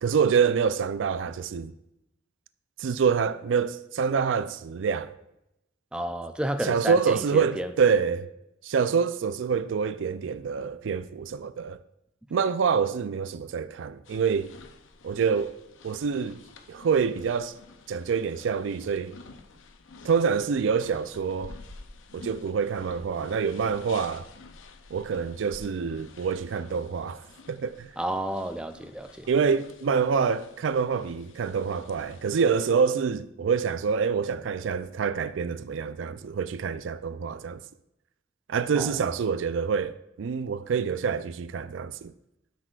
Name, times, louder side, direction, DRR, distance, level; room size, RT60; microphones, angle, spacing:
voice 1, 0.0-1.7 2.8-5.1 6.6-8.3 8.6-11.8 12.3-14.5 15.0-15.5 15.8-16.4 16.7-17.5 17.9-19.1 20.0-21.5 22.1-24.3 24.9-27.2 27.5-27.9 29.3-37.6 38.5-42.1, right 6 dB, 75° right, 0.4 m, -26 dB
voice 2, 5.9-7.7 28.0-29.3 38.8-39.0, right 1 dB, 5° right, 0.4 m, -31 dB
sound 1, 14.0-32.9, left 3 dB, 80° left, 0.6 m, -50 dB
12.0 x 6.1 x 2.4 m
head